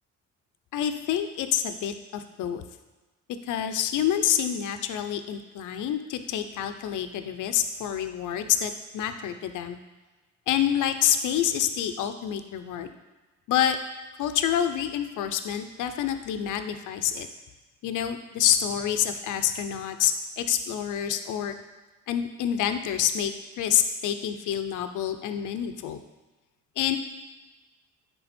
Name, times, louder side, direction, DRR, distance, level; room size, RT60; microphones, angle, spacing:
voice 1, 0.7-2.6 3.4-9.8 10.5-12.9 13.5-13.8 14.2-17.3 17.8-21.6 22.1-26.0 26.8-27.0, left 10 dB, 80° left, 8 dB, 0.6 m, -27 dB
10.0 x 3.5 x 4.3 m, 1.2 s
cardioid pair, 90°, 30 cm